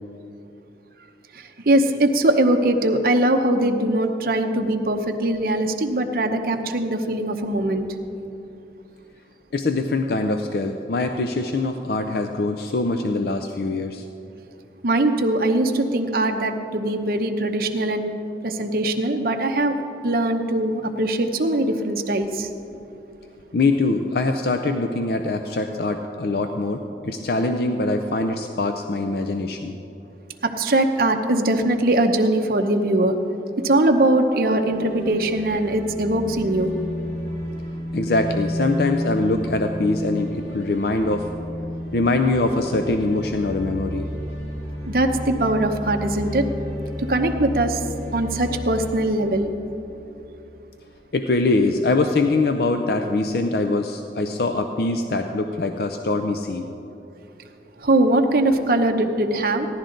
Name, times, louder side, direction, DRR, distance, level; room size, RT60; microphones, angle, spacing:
voice 1, 1.3-7.9 14.8-18.1 18.4-19.7 20.0-22.5 30.4-33.1 33.6-36.7 44.9-46.4 47.0-47.8 48.1-49.5 57.8-59.7, right 1 dB, 50° right, 5 dB, 0.8 m, -21 dB
voice 2, 9.5-14.1 23.5-29.8 37.9-41.3 41.9-44.1 51.1-56.7, left 2 dB, 60° left, 6 dB, 0.5 m, -23 dB
sound 1, 34.4-50.5, equal, 80° left, 2.6 m, -32 dB
16.0 x 11.0 x 3.9 m, 2.8 s
head